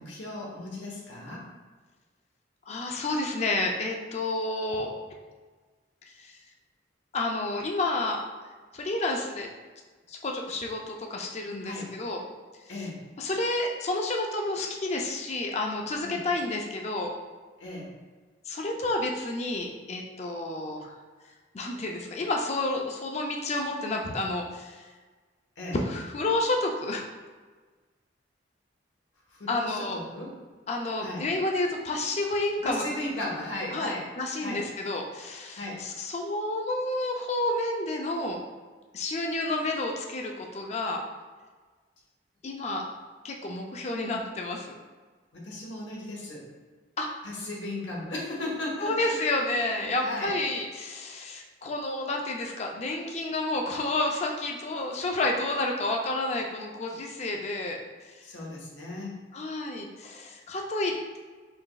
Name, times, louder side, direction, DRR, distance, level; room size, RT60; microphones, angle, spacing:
voice 1, 0.0-1.4 11.6-11.9 12.7-13.0 16.0-16.2 17.6-17.9 25.6-25.8 29.3-30.3 31.0-31.3 32.6-34.1 34.4-34.6 35.5-35.8 45.3-46.5 47.2-50.3 58.2-59.2, left 1 dB, 85° left, -3 dB, 1.2 m, -36 dB
voice 2, 2.7-4.9 6.2-6.3 7.1-8.2 8.7-9.5 10.1-12.2 13.2-17.1 18.5-21.0 21.5-24.8 25.7-27.0 29.5-30.0 30.7-32.8 33.7-38.4 38.9-41.0 42.4-42.9 43.2-44.7 47.0-47.1 48.8-57.8 59.3-61.2, left 2 dB, 35° left, 1 dB, 0.4 m, -30 dB
5.0 x 3.0 x 2.3 m, 1.4 s
head